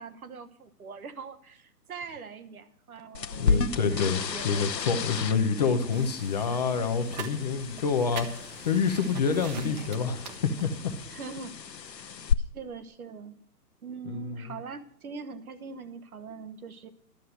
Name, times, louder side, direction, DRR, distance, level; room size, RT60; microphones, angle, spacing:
voice 1, 0.0-4.8 9.5-9.9 11.1-11.6 12.0-12.1 12.5-13.4 13.8-16.9, right 5 dB, 60° right, 10 dB, 1.2 m, -42 dB
sound 1, 3.1-12.3, left 6 dB, 85° left, 0.8 m, -33 dB
voice 2, 3.4-10.9 14.1-14.5, left 5 dB, 25° left, 7 dB, 0.7 m, -27 dB
sound 2, 5.9-11.1, right 5 dB, 25° right, 0.9 m, -44 dB
11.5 x 6.6 x 7.6 m, 0.66 s
figure-of-eight pair, 135°, 49 cm